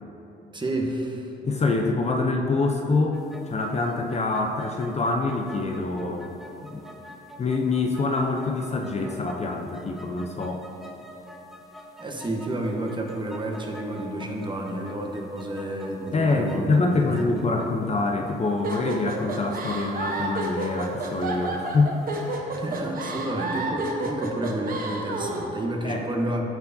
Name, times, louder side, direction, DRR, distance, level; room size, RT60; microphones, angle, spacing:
voice 1, 0.5-1.3 12.0-17.2 22.5-26.5, right 1 dB, 25° right, 1 dB, 1.0 m, -30 dB
voice 2, 1.4-3.2 3.5-6.3 6.7-6.9 7.4-10.6 16.1-22.0 22.3-22.5 25.8-26.1, left 3 dB, 35° left, 2 dB, 0.5 m, -25 dB
sound 1, 3.1-22.4, equal, ahead, 0.7 m, -47 dB
sound 2, 18.6-25.5, right 2 dB, 45° right, 1.0 m, -31 dB
13.5 x 4.6 x 2.7 m, 2.9 s
cardioid pair, 90°, 20 cm